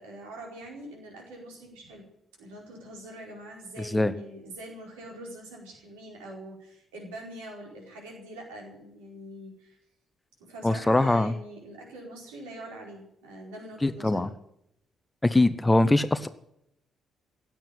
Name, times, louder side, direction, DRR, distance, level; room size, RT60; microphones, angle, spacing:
voice 1, 0.0-2.1 2.4-9.8 10.4-14.4, right 1 dB, 70° right, -1 dB, 4.8 m, -43 dB
voice 2, 3.8-4.1 10.6-11.3 13.8-14.3 15.2-16.3, left 2 dB, 15° left, 13 dB, 1.0 m, -22 dB
16.0 x 9.1 x 9.2 m, 0.77 s
figure-of-eight pair, 40°, 0 cm